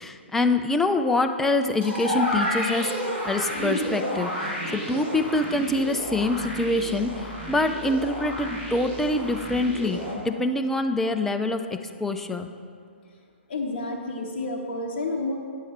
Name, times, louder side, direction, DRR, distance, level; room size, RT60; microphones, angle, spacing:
voice 1, 0.0-2.9 3.2-11.6 12.0-12.5, left 2 dB, 5° left, 6 dB, 0.3 m, -25 dB
sound 1, 1.8-10.1, equal, 20° right, 2.2 m, -31 dB
voice 2, 13.5-15.3, left 2 dB, 45° left, -1 dB, 0.8 m, -30 dB
9.2 x 6.4 x 4.3 m, 2.2 s
figure-of-eight pair, 120°, 6 cm